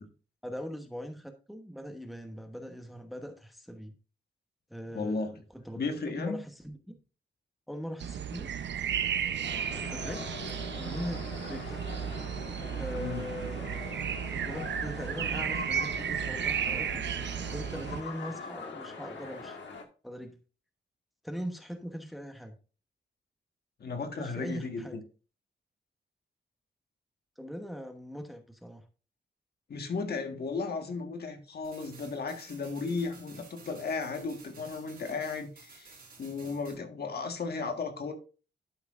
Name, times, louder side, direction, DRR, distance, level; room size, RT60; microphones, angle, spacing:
voice 1, 0.4-3.9 4.7-7.0 7.7-8.5 9.7-10.4 10.8-11.8 12.7-14.0 14.3-17.0 17.5-19.6 20.0-20.4 21.2-22.6 24.2-25.0 27.4-28.8, equal, ahead, 1.0 m, -41 dB
voice 2, 4.9-5.3 5.7-6.4 13.0-13.3 23.8-25.0 29.7-35.9 36.2-38.1, left 4 dB, 60° left, 1.5 m, -35 dB
sound 1, 8.0-18.0, right 8 dB, 75° right, 0.7 m, -34 dB
sound 2, 9.4-19.8, left 4 dB, 85° left, 1.6 m, -43 dB
sound 3, 31.6-36.8, right 4 dB, 50° right, 3.9 m, -54 dB
12.0 x 5.8 x 2.5 m
wide cardioid pair, 130°, 19 cm